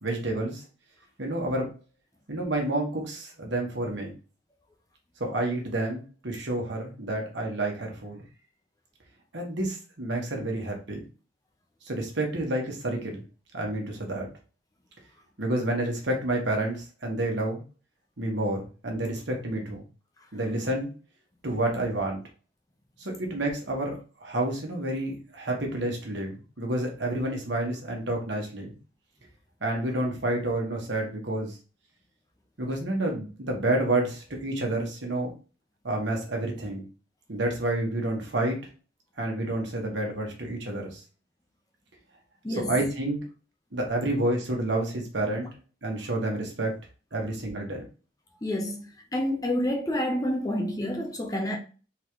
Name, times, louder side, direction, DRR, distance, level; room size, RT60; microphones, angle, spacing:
voice 1, 0.0-0.6 1.2-1.7 2.3-4.1 5.2-8.2 9.3-11.0 11.8-13.2 13.5-14.3 15.4-17.6 18.2-19.8 20.3-20.9 21.4-22.2 23.0-23.9 24.2-28.8 29.6-31.6 32.6-35.3 35.8-36.8 37.3-38.6 39.2-41.0 42.5-43.2 43.7-45.5 45.8-46.7 47.1-47.8, right 1 dB, 60° right, 1.3 m, -29 dB
voice 2, 42.4-42.7 48.4-48.9 49.1-51.6, left 1 dB, 20° left, 0.7 m, -28 dB
4.0 x 3.7 x 3.1 m
head